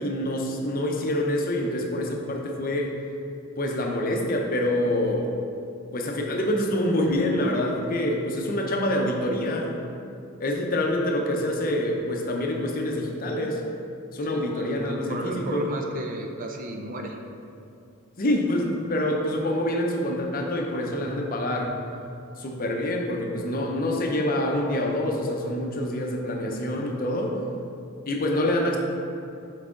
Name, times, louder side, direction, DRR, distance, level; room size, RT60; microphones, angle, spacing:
voice 1, 0.0-3.0 3.6-5.3 5.9-9.7 10.4-13.6 14.1-15.7 18.2-21.8 22.4-27.4 28.1-28.8, left 1 dB, 40° left, 1 dB, 0.7 m, -26 dB
voice 2, 14.2-17.2, right 2 dB, 40° right, 3 dB, 0.5 m, -34 dB
6.0 x 4.8 x 3.7 m, 2.6 s
head